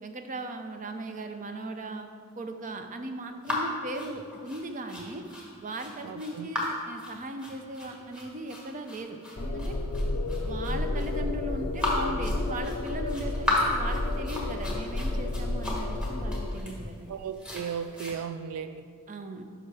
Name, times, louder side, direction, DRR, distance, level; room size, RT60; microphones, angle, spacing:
voice 1, 0.0-2.1 2.4-5.2 5.6-9.7 10.4-17.1 19.1-19.4, right 1 dB, 35° right, 6 dB, 0.6 m, -38 dB
sound 1, 3.4-18.1, left 1 dB, 5° right, 1.6 m, -35 dB
voice 2, 6.0-6.5 17.1-18.8, right 7 dB, 80° right, 10 dB, 0.3 m, -36 dB
sound 2, 9.4-16.6, left 2 dB, 45° left, 0.6 m, -31 dB
11.0 x 5.9 x 3.4 m, 2.1 s
head